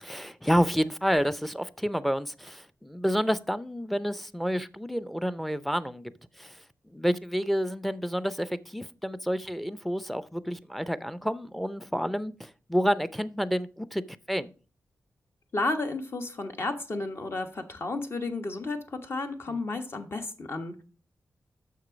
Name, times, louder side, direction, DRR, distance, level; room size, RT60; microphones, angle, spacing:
voice 1, 0.1-6.1 6.4-6.6 6.9-14.0 14.3-14.5, equal, ahead, 0.5 m, -29 dB
voice 2, 15.5-20.8, left 2 dB, 50° left, 1.3 m, -32 dB
6.5 x 6.2 x 5.1 m
cardioid pair, 70°, 6 cm